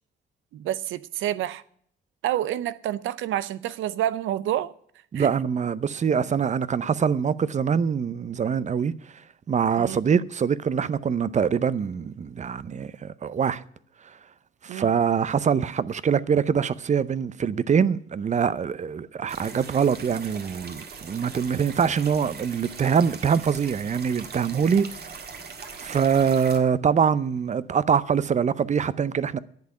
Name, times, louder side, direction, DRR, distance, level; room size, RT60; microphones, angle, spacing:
voice 1, 0.5-1.6 2.2-4.7 5.1-5.4 9.8-10.0 14.7-14.9, right 12 dB, 80° right, 0.7 m, -28 dB
voice 2, 5.1-8.9 9.5-13.6 14.6-24.9 25.8-29.4, right 7 dB, 35° right, 0.6 m, -24 dB
sound 1, 19.3-26.6, right 5 dB, 55° right, 1.8 m, -41 dB
10.5 x 7.5 x 9.5 m
cardioid pair, 90°, 20 cm